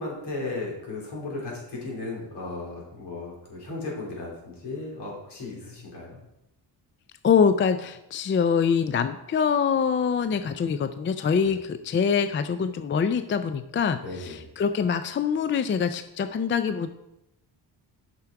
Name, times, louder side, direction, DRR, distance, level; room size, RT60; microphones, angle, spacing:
voice 1, 0.0-6.2 11.4-11.5 14.0-14.5, left 2 dB, 70° left, -3 dB, 3.6 m, -35 dB
voice 2, 7.2-16.9, left 6 dB, 30° left, 10 dB, 0.4 m, -24 dB
8.5 x 6.0 x 4.7 m, 0.87 s
cardioid pair, 135°, 42 cm